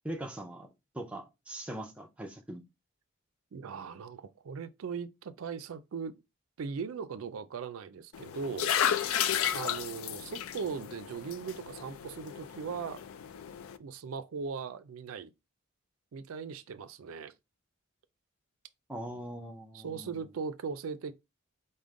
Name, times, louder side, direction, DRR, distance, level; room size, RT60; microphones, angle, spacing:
voice 1, 0.0-0.7 0.9-2.6 18.9-20.3, right 1 dB, 5° right, 0.6 m, -41 dB
voice 2, 3.5-6.1 6.6-8.7 9.5-13.0 13.8-15.3 16.1-17.3 19.7-21.1, right 5 dB, 85° right, 0.4 m, -39 dB
sound 1, 8.1-13.8, left 9 dB, 85° left, 0.4 m, -33 dB
5.1 x 2.1 x 3.6 m
head